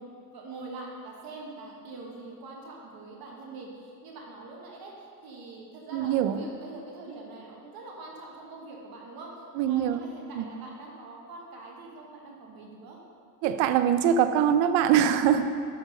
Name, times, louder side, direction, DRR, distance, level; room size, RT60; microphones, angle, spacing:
voice 1, 0.0-9.3 9.7-13.0, right 3 dB, 50° right, -1 dB, 1.6 m, -44 dB
voice 2, 5.9-6.4 9.6-10.0 10.3-10.4 13.4-15.5, right 9 dB, 70° right, 10 dB, 0.7 m, -23 dB
6.5 x 5.8 x 5.3 m, 2.3 s
supercardioid pair, 100°, 46 cm